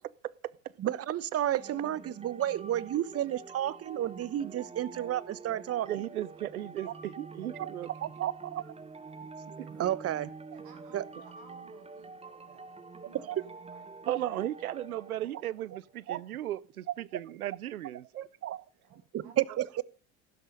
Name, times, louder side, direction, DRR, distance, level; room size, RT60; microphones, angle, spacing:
voice 1, 0.8-5.9 6.8-6.9 7.6-7.7 8.0-8.7 9.4-10.3 10.9-11.1 13.3-13.4 16.1-16.2 18.4-18.6 19.1-19.8, right 12 dB, 35° right, 1.1 m, -32 dB
sound 1, 1.6-16.0, right 4 dB, 15° right, 1.2 m, -47 dB
voice 2, 5.8-7.9 9.6-9.7 14.1-18.3, right 13 dB, 85° right, 0.7 m, -36 dB
voice 3, 10.5-14.2 18.7-19.4, right 6 dB, 55° right, 7.3 m, -57 dB
15.5 x 12.0 x 5.2 m
hypercardioid pair, 75°, 42 cm